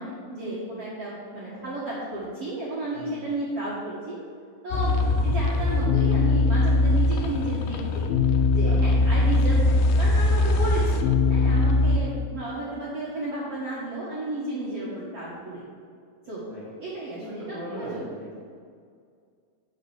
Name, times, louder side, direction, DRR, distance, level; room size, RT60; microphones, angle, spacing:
voice 1, 0.0-4.2 4.6-5.0 5.2-8.1 8.5-15.6 16.3-16.4 16.8-18.1, right 2 dB, 75° right, -7 dB, 1.3 m, -33 dB
voice 2, 2.9-3.3 4.7-4.8 8.5-8.8 10.3-10.5 11.4-11.6 16.5-16.7 17.2-18.4, equal, 35° left, -7 dB, 2.6 m, -40 dB
sound 1, 4.7-12.0, left 3 dB, 90° left, 3.1 m, -21 dB
8.0 x 6.7 x 8.1 m, 2.2 s
omnidirectional pair, 5.5 m